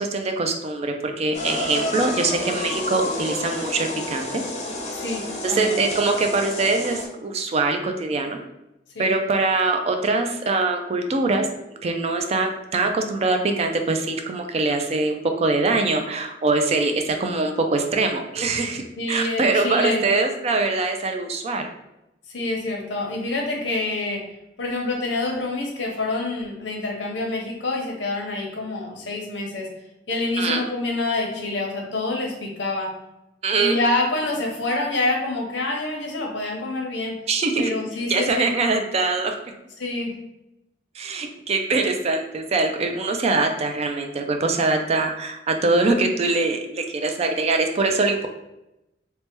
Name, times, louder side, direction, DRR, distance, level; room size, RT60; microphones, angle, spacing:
voice 1, 0.0-4.4 5.4-8.4 9.0-18.8 19.1-21.7 30.4-30.6 33.4-33.8 37.3-37.7 38.1-39.3 41.0-48.3, right 3 dB, 35° right, 5 dB, 0.3 m, -23 dB
sound 1, 1.3-7.1, left 2 dB, 40° left, 0.6 m, -30 dB
voice 2, 4.9-5.8 8.9-9.2 19.0-20.0 22.3-24.2 24.6-29.7 30.1-32.9 33.6-37.2 37.6-38.7 39.8-40.1, left 2 dB, 85° left, 0 dB, 0.7 m, -27 dB
3.2 x 2.1 x 2.9 m, 0.90 s
head